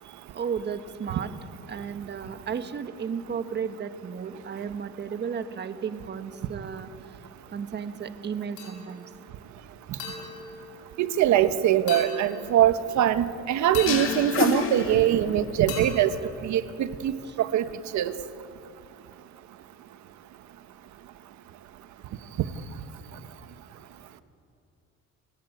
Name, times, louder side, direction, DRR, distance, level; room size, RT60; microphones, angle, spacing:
voice 1, 0.3-1.3 1.7-7.2 7.5-9.1 17.2-17.3, right 7 dB, 35° right, 9 dB, 1.4 m, -34 dB
sound 1, 8.6-9.2 10.0-11.4 11.9-12.9 13.7-15.2 15.7-17.1, left 5 dB, 80° left, 6.9 m, -40 dB
voice 2, 11.0-16.1 16.4-17.1 17.4-17.7 17.9-18.1, right 11 dB, 75° right, 11 dB, 1.3 m, -22 dB
sound 2, 13.9-15.6, left 6 dB, 45° left, 2.2 m, -28 dB
29.5 x 18.0 x 9.2 m, 2.6 s
cardioid pair, 140°, 29 cm